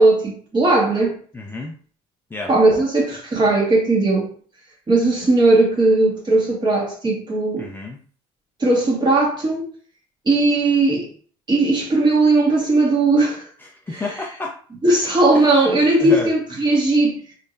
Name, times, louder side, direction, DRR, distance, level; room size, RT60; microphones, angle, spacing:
voice 1, 0.0-1.2 2.5-4.3 4.9-7.7 8.6-9.7 10.2-11.1 11.5-13.5 13.9-14.2 14.8-17.2, right 2 dB, 30° right, 1.7 m, -17 dB
voice 2, 1.3-1.7 2.3-2.5 7.6-8.0 13.6-14.6 15.3-15.5 16.0-16.3, left 2 dB, 15° left, 0.5 m, -30 dB
3.4 x 3.2 x 2.6 m
supercardioid pair, 80°, 15 cm